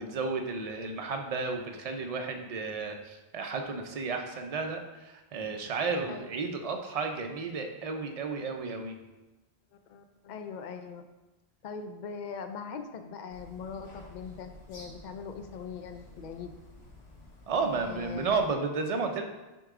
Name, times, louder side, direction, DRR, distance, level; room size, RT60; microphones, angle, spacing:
voice 1, 0.0-8.9 17.5-19.2, right 4 dB, 40° right, 4 dB, 0.6 m, -32 dB
voice 2, 9.9-11.0 11.6-16.5 17.7-18.3, left 6 dB, 55° left, 8 dB, 0.5 m, -41 dB
sound 1, 13.3-18.5, left 2 dB, 80° left, 1.3 m, -51 dB
6.4 x 4.6 x 3.7 m, 1.1 s
omnidirectional pair, 1.1 m